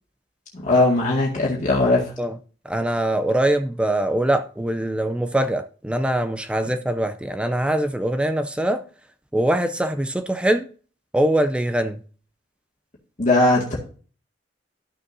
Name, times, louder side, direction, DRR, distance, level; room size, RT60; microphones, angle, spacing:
voice 1, 0.6-2.1 13.2-13.8, left 2 dB, 40° left, 2.0 m, -19 dB
voice 2, 2.6-8.8 9.3-10.7 11.1-12.0, right 1 dB, 5° right, 0.4 m, -23 dB
13.5 x 6.3 x 2.7 m
head